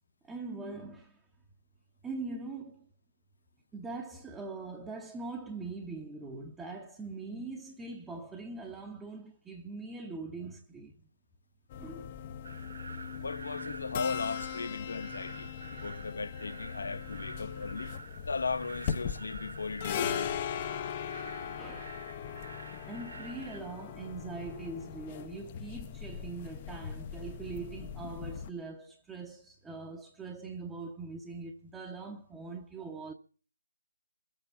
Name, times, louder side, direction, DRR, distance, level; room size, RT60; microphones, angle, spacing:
voice 1, 0.2-1.2 2.0-2.9 3.7-11.0 11.8-12.1 21.6-22.0 22.8-33.1, right 3 dB, 5° right, 0.8 m, -42 dB
sound 1, 11.7-28.5, left 8 dB, 25° left, 0.6 m, -39 dB
sound 2, 12.4-23.6, right 4 dB, 55° right, 1.5 m, -48 dB
voice 2, 13.1-17.9 18.2-20.3, left 4 dB, 60° left, 0.8 m, -37 dB
21.5 x 8.3 x 7.0 m
figure-of-eight pair, 155°, 0 cm